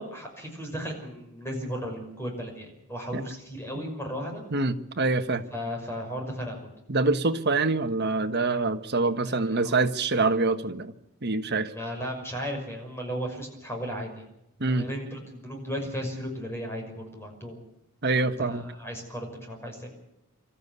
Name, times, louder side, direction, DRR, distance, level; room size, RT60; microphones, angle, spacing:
voice 1, 0.0-4.4 5.5-6.7 9.2-10.2 11.7-14.3 14.7-17.6 18.1-20.0, equal, 10° left, 2 dB, 6.0 m, -35 dB
voice 2, 4.5-5.4 6.9-10.9 11.2-11.7 14.6-14.9 18.0-18.6, right 3 dB, 50° right, 8 dB, 1.4 m, -25 dB
26.0 x 14.0 x 8.2 m, 0.85 s
head